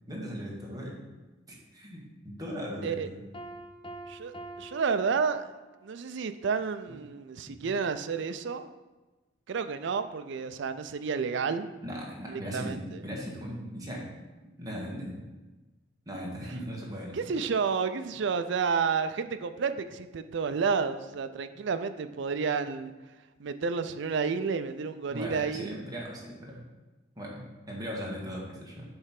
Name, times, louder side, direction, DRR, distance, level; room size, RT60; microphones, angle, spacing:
voice 1, 0.1-1.0 1.5-3.2 6.9-7.0 7.4-7.8 11.8-14.1 14.6-15.2 16.0-17.4 25.1-26.6 27.2-28.8, equal, 20° right, -3 dB, 1.5 m, -38 dB
Piano, 3.3-5.9, right 1 dB, 25° left, 0.5 m, -45 dB
voice 2, 4.1-5.5 5.8-8.7 9.5-11.7 12.3-13.0 17.1-22.9 23.4-25.8, right 5 dB, 65° right, 10 dB, 0.4 m, -30 dB
7.9 x 3.3 x 5.8 m, 1.2 s
head